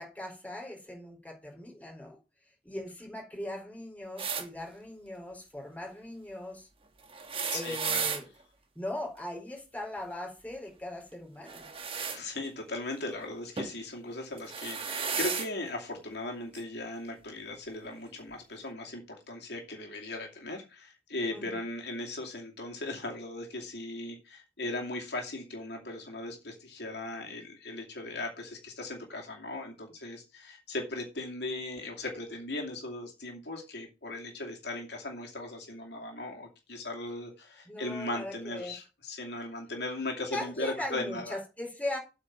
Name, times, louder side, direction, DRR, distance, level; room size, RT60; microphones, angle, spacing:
voice 1, 0.0-2.2 2.6-6.7 7.5-8.3 8.8-11.7 21.3-21.6 37.7-38.7 40.3-42.0, left 1 dB, 10° left, 4.1 m, -39 dB
sound 1, 4.2-4.5 7.1-8.2 11.4-12.2 13.6-13.8 14.4-15.5 16.5-16.6 17.8-17.9, right 6 dB, 30° right, 1.4 m, -33 dB
voice 2, 7.5-8.1 12.1-41.4, left 2 dB, 65° left, 2.5 m, -38 dB
8.3 x 5.1 x 7.3 m
head